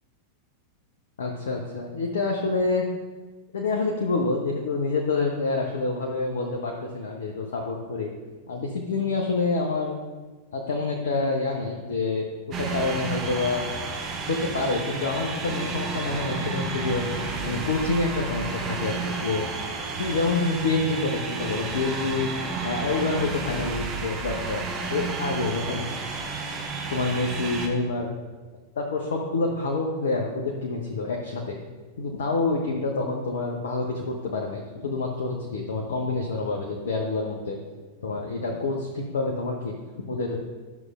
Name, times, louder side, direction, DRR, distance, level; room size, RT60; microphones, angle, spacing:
voice 1, 1.2-2.9 3.5-8.1 8.5-10.0 10.5-13.6 14.3-17.0 17.4-19.5 20.0-22.3 22.6-25.9 26.9-28.1 28.8-31.6 32.0-37.6 38.0-40.4, left 3 dB, 65° left, 0 dB, 0.7 m, -27 dB
sound 1, 12.5-27.7, right 4 dB, 30° right, 1.0 m, -31 dB
11.0 x 6.4 x 2.4 m, 1.3 s
figure-of-eight pair, 90°, 0 cm